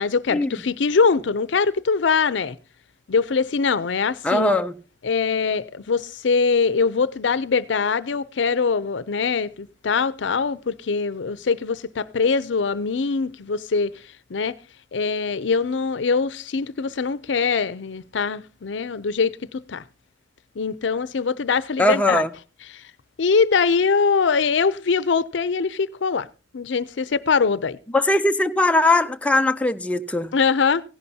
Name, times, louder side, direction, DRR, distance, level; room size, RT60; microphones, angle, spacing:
voice 1, 0.0-2.6 3.1-4.5 5.0-13.9 14.3-14.6 14.9-19.8 20.6-22.2 22.7-22.8 23.2-26.3 26.5-27.8 30.3-30.8, left 5 dB, 75° left, 0.5 m, -22 dB
voice 2, 4.2-4.7 21.8-22.3 27.9-30.3, left 2 dB, 5° left, 0.4 m, -20 dB
16.5 x 11.0 x 2.8 m
head